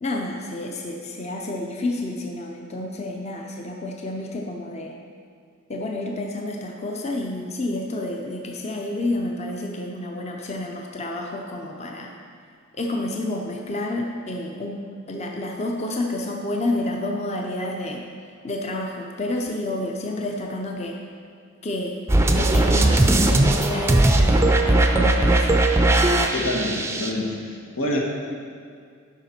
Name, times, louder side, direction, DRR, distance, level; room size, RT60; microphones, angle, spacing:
voice 1, 0.0-5.0 5.7-12.2 12.7-18.0 18.4-21.0 21.6-22.0 22.3-25.5, left 1 dB, 30° left, 1 dB, 0.6 m, -29 dB
sound 1, 22.1-27.1, right 1 dB, 15° right, 0.4 m, -18 dB
voice 2, 26.3-27.4 27.8-28.0, left 1 dB, 85° left, -1 dB, 1.4 m, -26 dB
11.0 x 5.8 x 4.4 m, 2.2 s
head